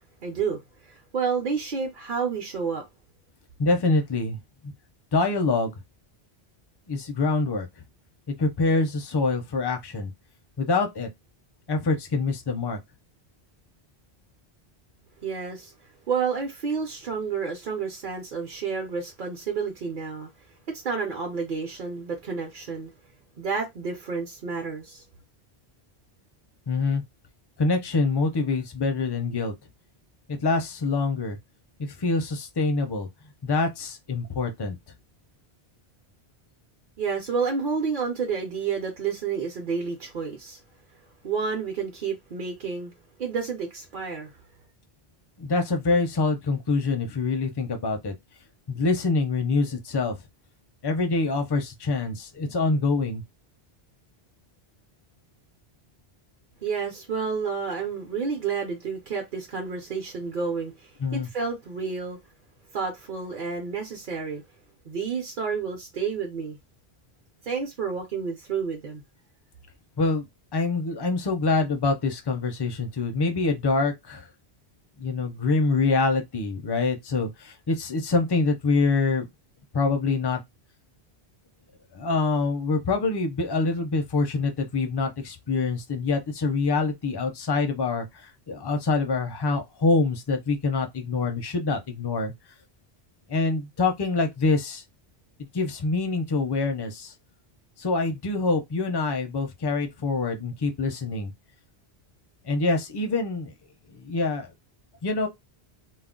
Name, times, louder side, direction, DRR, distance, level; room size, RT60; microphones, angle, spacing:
voice 1, 0.2-2.8 15.2-15.7 16.1-20.3 20.7-22.9 23.4-25.0 37.0-40.6 41.2-42.9 43.2-44.4 56.6-62.2 62.7-64.4 64.8-66.6 67.4-69.0, right 5 dB, 55° right, 0.7 m, -30 dB
voice 2, 3.6-4.4 4.6-4.7 5.1-5.7 6.9-7.7 8.3-10.1 10.6-11.1 11.7-12.8 26.7-27.0 27.6-29.5 30.3-31.4 31.8-33.1 33.4-34.8 45.4-48.1 48.7-50.2 50.8-53.2 61.0-61.3 70.0-70.3 70.5-74.2 75.0-79.3 79.7-80.4 81.9-92.3 93.3-94.8 95.5-97.1 97.8-101.3 102.4-103.5 103.9-104.5 105.0-105.3, left 3 dB, 35° left, 0.4 m, -25 dB
2.3 x 2.0 x 3.6 m
omnidirectional pair, 1.1 m